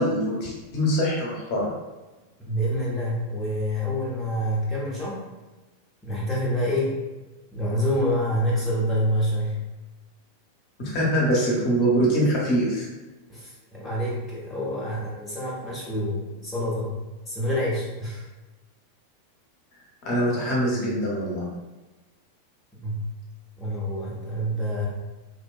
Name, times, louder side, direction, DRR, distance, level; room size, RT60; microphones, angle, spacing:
voice 1, 0.0-1.7 10.8-12.9 20.0-21.4, equal, 45° left, -4 dB, 0.7 m, -23 dB
voice 2, 2.4-5.2 6.0-7.0 7.5-9.6 13.3-16.9 17.3-18.3 22.8-23.0 23.6-24.9, equal, 10° left, -7 dB, 0.5 m, -27 dB
2.6 x 2.1 x 2.3 m, 1.2 s
figure-of-eight pair, 90°, 0 cm